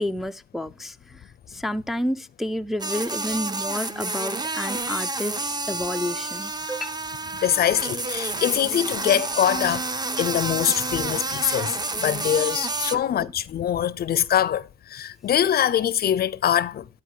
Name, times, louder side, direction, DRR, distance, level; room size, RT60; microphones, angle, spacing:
voice 1, 0.0-7.0 12.9-13.3, left 1 dB, ahead, 0.4 m, -30 dB
sound 1, 2.8-13.0, right 3 dB, 20° right, 0.8 m, -29 dB
voice 2, 7.3-9.9 10.2-16.9, left 10 dB, 50° left, 0.5 m, -23 dB
12.0 x 5.0 x 4.7 m
cardioid pair, 90°, 20 cm